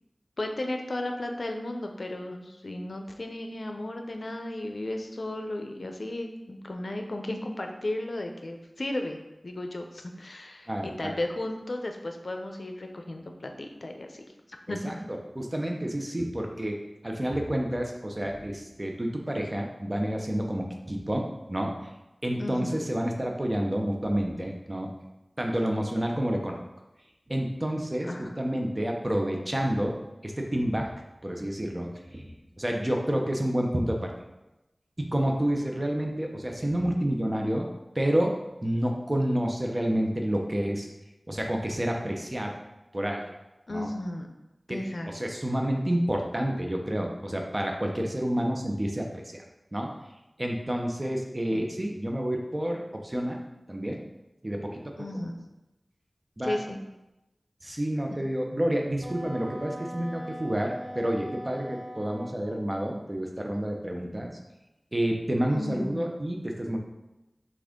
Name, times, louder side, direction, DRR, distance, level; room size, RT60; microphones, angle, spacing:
voice 1, 0.4-9.2 9.4-14.3 14.7-15.0 22.4-22.9 28.0-28.4 43.7-44.3 44.7-45.1 51.5-51.7 55.0-55.3 56.4-56.8 65.5-66.1, left 1 dB, 70° left, 4 dB, 0.5 m, -34 dB
voice 2, 10.7-11.1 14.7-21.7 22.2-24.9 25.4-26.6 27.3-28.1 28.4-30.0 30.2-30.9 31.2-32.3 32.6-34.1 35.0-37.7 37.9-40.9 41.3-42.5 42.9-43.2 43.7-43.9 44.7-44.8 45.1-49.4 49.7-49.9 50.4-53.4 53.7-54.0 54.4-54.9 56.4-56.6 57.6-64.3 64.9-66.8, right 1 dB, 30° right, 1 dB, 0.7 m, -29 dB
Wind instrument woodwind instrument, 59.0-62.4, equal, 80° right, 1.4 m, -40 dB
6.1 x 2.4 x 3.6 m, 0.97 s
wide cardioid pair, 45°, 0 cm